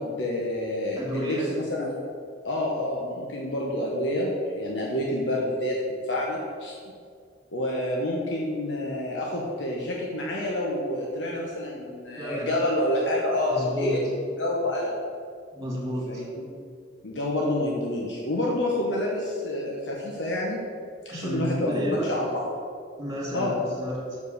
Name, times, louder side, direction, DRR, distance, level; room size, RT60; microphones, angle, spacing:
voice 1, 0.0-2.0 2.4-6.8 7.5-15.0 16.1-16.4 17.0-20.6 21.0-22.4 23.3-23.5, left 1 dB, 75° left, -2 dB, 1.0 m, -28 dB
voice 2, 1.0-1.5 12.2-12.5 13.5-13.9 15.5-16.2 21.1-22.1 23.0-24.2, equal, 20° right, -4 dB, 2.2 m, -31 dB
7.0 x 4.9 x 6.7 m, 2.2 s
head